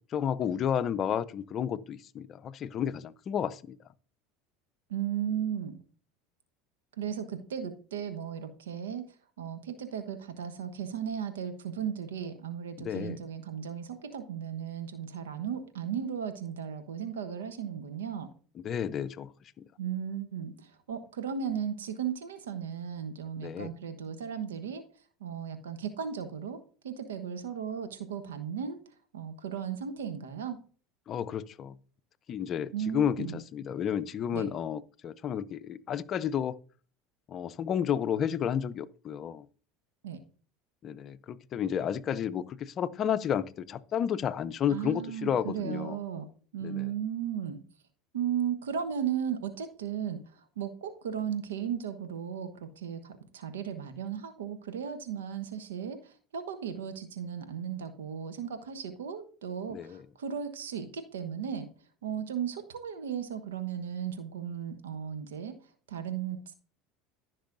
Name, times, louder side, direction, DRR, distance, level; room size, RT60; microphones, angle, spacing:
voice 1, 0.1-3.8 12.8-13.2 18.6-19.3 23.4-23.7 31.1-31.7 32.3-36.6 37.3-39.5 40.8-46.0 46.6-46.9 59.7-60.0, left 8 dB, 45° left, 0.5 m, -31 dB
voice 2, 4.9-5.8 7.0-9.0 9.4-18.3 19.8-24.8 25.2-26.6 26.8-28.8 29.1-30.6 32.7-33.4 34.3-34.5 40.0-40.2 44.7-46.2 46.5-47.6 48.1-50.2 50.6-61.7 62.0-65.5 65.9-66.5, right 8 dB, 85° right, 1.1 m, -35 dB
14.5 x 6.1 x 2.6 m
hypercardioid pair, 85°, 0 cm